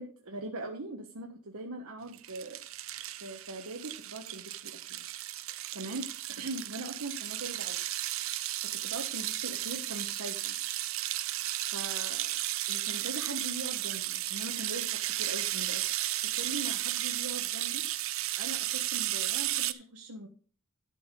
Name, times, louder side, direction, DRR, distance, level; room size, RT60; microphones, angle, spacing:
voice 1, 0.0-2.6 3.2-5.0 5.7-7.8 8.6-10.5 11.7-12.3 12.7-15.9 16.3-17.8 18.4-20.3, right 2 dB, 85° right, 2 dB, 1.4 m, -41 dB
sound 1, 2.1-19.7, right 14 dB, 70° right, 0.6 m, -34 dB
12.0 x 5.7 x 5.1 m, 0.41 s
head